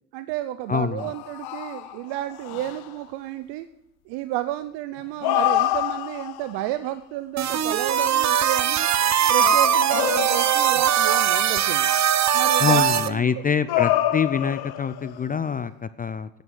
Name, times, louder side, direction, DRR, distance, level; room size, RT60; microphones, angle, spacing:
voice 1, 0.1-3.7 4.1-8.9 9.3-11.9 12.3-13.3, right 14 dB, 65° right, 12 dB, 0.8 m, -31 dB
voice 2, 0.7-1.1 12.6-16.3, left 6 dB, 20° left, 14 dB, 0.4 m, -25 dB
sound 1, 1.0-2.9 5.0-6.6 7.6-8.2 9.1-11.0 12.8-15.3, left 14 dB, 55° left, 0.9 m, -27 dB
sound 2, 7.4-13.1, right 9 dB, 40° right, 0.9 m, -21 dB
9.3 x 9.1 x 9.2 m, 0.82 s
hypercardioid pair, 70°, 44 cm